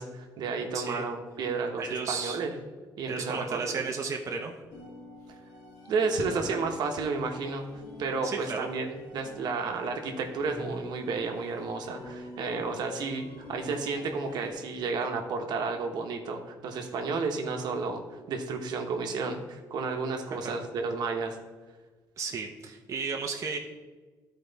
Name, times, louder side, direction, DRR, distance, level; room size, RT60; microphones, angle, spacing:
voice 1, 0.0-2.5 3.0-3.8 5.9-7.6 8.0-18.0 18.3-21.4, right 4 dB, 70° right, 4 dB, 1.1 m, -32 dB
voice 2, 0.7-1.1 1.8-2.4 3.1-4.5 8.2-8.7 20.3-20.5 22.2-23.6, right 5 dB, 45° right, 2 dB, 0.8 m, -33 dB
sound 1, 4.7-14.5, left 1 dB, 70° left, 2.5 m, -47 dB
12.0 x 4.6 x 4.0 m, 1.3 s
cardioid pair, 105°, 7 cm